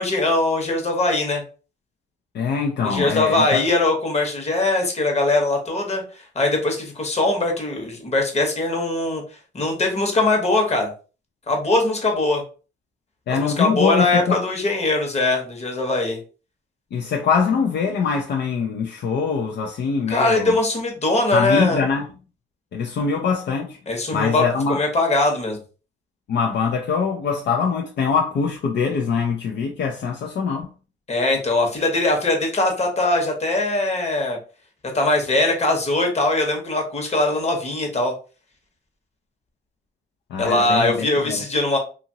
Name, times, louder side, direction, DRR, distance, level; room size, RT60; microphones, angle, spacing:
voice 1, 0.0-1.4 2.8-9.2 9.5-10.9 11.5-12.4 13.3-16.2 20.1-21.8 23.9-24.4 24.7-25.6 31.1-34.4 34.9-38.1 40.4-41.8, left 2 dB, 35° left, 1.1 m, -21 dB
voice 2, 2.3-3.6 13.3-14.4 16.9-20.5 21.3-22.1 22.7-23.8 24.1-24.8 26.3-30.7 40.3-41.4, left 5 dB, 60° left, 0.5 m, -23 dB
2.8 x 2.5 x 2.7 m
cardioid pair, 90°, 20 cm